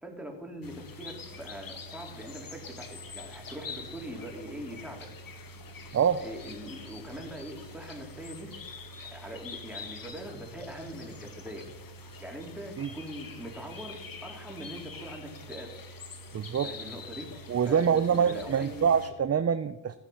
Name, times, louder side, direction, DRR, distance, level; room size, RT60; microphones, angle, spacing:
voice 1, 0.0-5.1 6.2-8.5 9.0-11.7 12.2-15.7 16.6-18.9, equal, ahead, 0 dB, 4.2 m, -42 dB
sound 1, 0.6-19.1, left 2 dB, 45° left, 1.9 m, -45 dB
voice 2, 16.3-16.7 17.5-20.0, right 7 dB, 35° right, 12 dB, 0.7 m, -25 dB
17.0 x 8.1 x 5.9 m, 0.94 s
cardioid pair, 70°, 46 cm